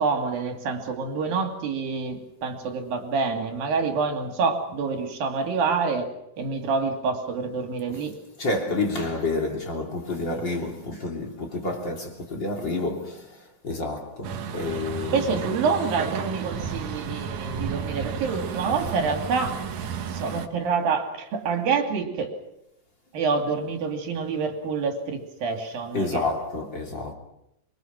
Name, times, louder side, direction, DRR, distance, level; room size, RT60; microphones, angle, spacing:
voice 1, 0.0-6.1 6.4-8.1 15.1-22.3 23.1-26.3, right 5 dB, 85° right, 4.5 m, -27 dB
voice 2, 8.4-15.3 25.9-27.1, left 2 dB, 35° left, 3.5 m, -29 dB
Truck, 14.2-20.5, right 6 dB, 65° right, 2.7 m, -32 dB
25.5 x 23.5 x 6.1 m
omnidirectional pair, 4.0 m